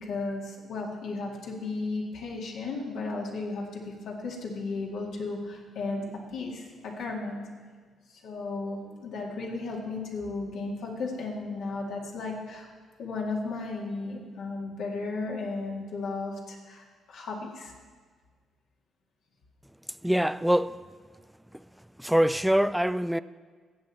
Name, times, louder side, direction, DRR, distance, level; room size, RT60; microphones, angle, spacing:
voice 1, 0.0-7.4 8.1-12.7 13.0-17.7, left 3 dB, 75° left, 2.0 m, -35 dB
voice 2, 20.0-20.9 21.5-21.6 22.0-23.2, equal, 5° right, 0.3 m, -24 dB
15.5 x 7.2 x 4.3 m
cardioid pair, 90°, 0 cm